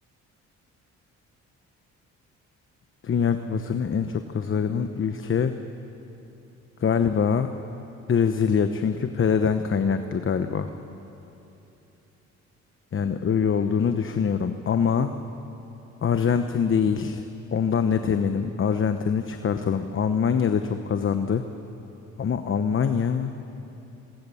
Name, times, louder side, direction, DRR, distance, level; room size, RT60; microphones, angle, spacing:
voice 1, 3.0-5.5 6.8-7.5 8.1-10.7 12.9-15.1 16.0-17.2 17.5-21.4 22.2-23.3, left 6 dB, 40° left, 8 dB, 1.1 m, -24 dB
26.0 x 22.5 x 7.1 m, 3.0 s
cardioid pair, 90°, 30 cm